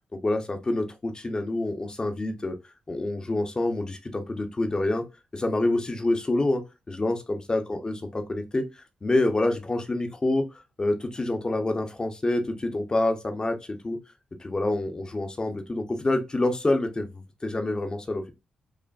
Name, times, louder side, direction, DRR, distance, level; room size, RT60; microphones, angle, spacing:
voice 1, 0.2-2.6 2.9-5.0 5.3-6.6 6.9-8.7 9.0-10.5 10.8-14.0 14.4-18.3, left 2 dB, 30° left, 0.8 m, -27 dB
4.9 x 2.4 x 2.3 m
cardioid pair, 65°, 3 cm